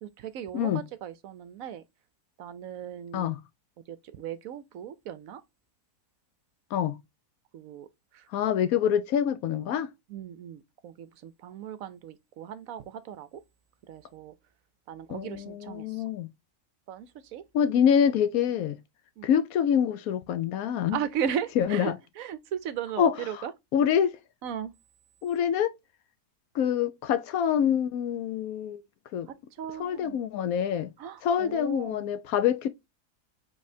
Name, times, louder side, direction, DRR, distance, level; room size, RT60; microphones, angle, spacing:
voice 1, 0.0-1.8 2.4-3.3 3.9-5.4 7.5-7.9 8.1-8.2 10.1-13.3 13.9-14.3 14.9-15.9 16.9-17.4 19.2-19.3 20.9-23.5 24.4-24.7 29.6-30.2 31.0-32.0, right 9 dB, 70° right, 0.9 m, -37 dB
voice 2, 0.5-0.9 3.1-3.4 6.7-7.0 8.3-9.9 15.1-16.3 17.5-18.8 19.2-21.0 21.6-22.0 23.0-23.5 23.7-24.2 25.2-25.7 26.5-28.8 29.1-29.3 29.8-30.9 31.2-32.7, left 8 dB, 70° left, 1.0 m, -26 dB
5.2 x 3.6 x 2.6 m
omnidirectional pair, 1.7 m